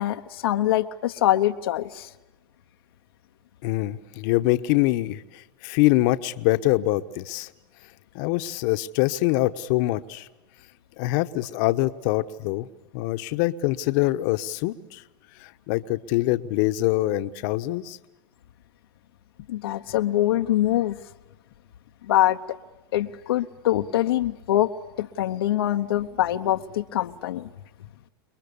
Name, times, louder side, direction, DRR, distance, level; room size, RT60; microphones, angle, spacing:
voice 1, 0.0-2.1 19.5-21.0 22.1-22.4 22.9-24.7 25.0-27.5, left 13 dB, 85° left, 5 dB, 1.0 m, -24 dB
voice 2, 3.6-7.5 8.1-10.3 11.0-12.7 12.9-15.0 15.4-18.0, left 17 dB, 60° left, 10 dB, 1.2 m, -24 dB
29.0 x 21.5 x 6.9 m, 1.1 s
supercardioid pair, 120°, 12 cm